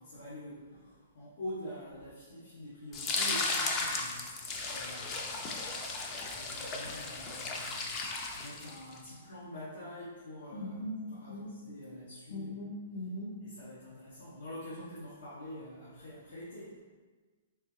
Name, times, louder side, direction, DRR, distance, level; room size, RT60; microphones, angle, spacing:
voice 1, 0.0-12.6 13.4-16.8, left 1 dB, 85° left, -8 dB, 1.0 m, -46 dB
sound 1, 2.9-9.0, left 3 dB, 20° left, 0.3 m, -35 dB
voice 2, 10.5-11.5 12.3-13.3, left 1 dB, 60° left, -1 dB, 0.6 m, -39 dB
3.6 x 3.5 x 3.0 m, 1.4 s
hypercardioid pair, 165°, 0 cm